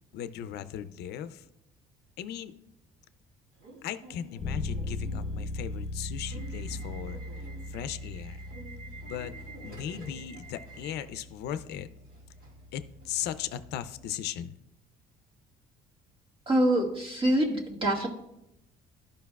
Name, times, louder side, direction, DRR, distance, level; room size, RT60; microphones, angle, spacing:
voice 1, 0.1-1.5 2.2-2.5 3.8-7.2 7.7-8.4 9.1-9.3 9.6-11.9 12.7-14.6, left 10 dB, 75° left, 12 dB, 0.5 m, -37 dB
Subway metro underground / Alarm, 3.5-13.4, right 3 dB, 55° right, 2.1 m, -50 dB
Bass guitar, 4.4-14.1, left 2 dB, 35° left, 0.7 m, -39 dB
voice 2, 16.5-18.1, right 1 dB, 30° right, -1 dB, 1.8 m, -25 dB
12.5 x 5.2 x 2.3 m, 0.84 s
cardioid pair, 110°, 17 cm